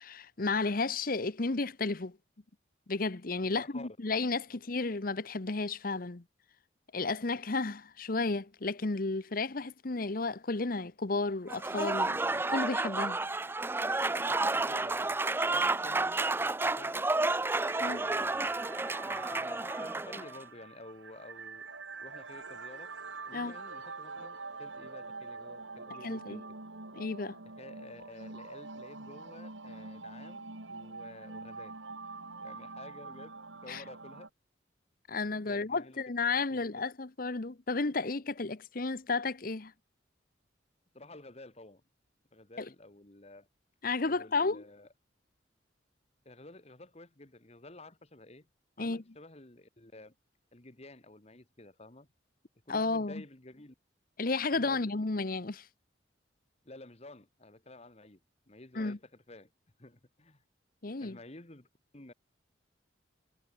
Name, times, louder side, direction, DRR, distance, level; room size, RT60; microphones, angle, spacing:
voice 1, 0.0-2.2 2.9-6.2 6.9-13.2 17.8-18.0 23.3-23.6 26.0-26.4 27.0-27.4 33.7-33.8 35.1-39.7 42.6-42.7 43.8-44.6 48.8-49.0 52.7-53.2 54.2-55.7 58.7-59.0 60.8-61.2, left 3 dB, 50° left, 1.0 m, -33 dB
voice 2, 3.4-3.9 14.2-17.1 17.8-18.6 19.1-21.7 22.0-22.9 23.3-26.4 27.6-31.8 32.4-34.3 35.3-36.0 36.5-36.9 40.9-41.8 42.3-43.5 44.0-44.9 46.3-48.5 48.8-50.2 50.5-52.1 52.7-53.8 54.5-54.9 56.6-58.2 58.5-59.5 59.8-60.4 60.9-61.7 61.9-62.1, left 2 dB, 35° left, 1.8 m, -52 dB
Applause / Crowd, 11.5-20.3, right 2 dB, 10° right, 0.5 m, -31 dB
sound 1, 17.6-34.3, right 4 dB, 90° right, 3.6 m, -45 dB
head